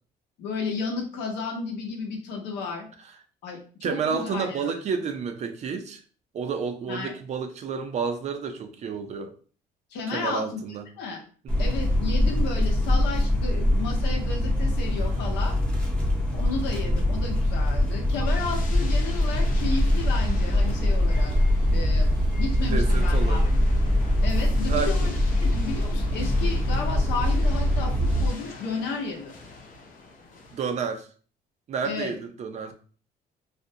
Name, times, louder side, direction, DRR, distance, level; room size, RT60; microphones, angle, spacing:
voice 1, 0.4-2.9 3.4-4.7 6.9-7.1 9.9-10.6 11.0-11.2 11.6-15.6 16.3-21.3 21.7-22.1 22.4-23.6 24.2-27.9 28.2-29.3 31.8-32.1, left 4 dB, 85° left, 1 dB, 0.8 m, -33 dB
voice 2, 3.8-6.0 6.3-9.4 10.1-10.8 11.4-11.7 12.3-12.4 16.8-17.0 22.6-23.5 24.7-25.1 30.5-31.1 31.7-32.7, right 6 dB, 40° right, 7 dB, 0.4 m, -30 dB
sound 1, 11.5-28.3, left 1 dB, 5° left, 0.6 m, -23 dB
sound 2, 18.3-30.9, left 3 dB, 55° left, 0.6 m, -44 dB
2.5 x 2.0 x 2.7 m, 0.40 s
cardioid pair, 110°, 17 cm